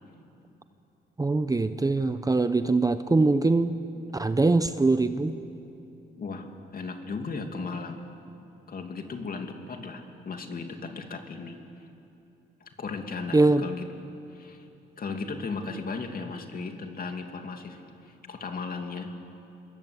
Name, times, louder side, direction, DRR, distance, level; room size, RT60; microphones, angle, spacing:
voice 1, 1.2-3.8 4.1-5.4 13.3-13.6, right 3 dB, 20° right, 11 dB, 0.8 m, -23 dB
voice 2, 6.2-8.0 8.7-11.6 12.6-13.9 14.3-14.6 15.0-19.1, left 4 dB, 45° left, 4 dB, 2.7 m, -36 dB
27.0 x 22.0 x 8.4 m, 2.8 s
cardioid pair, 100°, 20 cm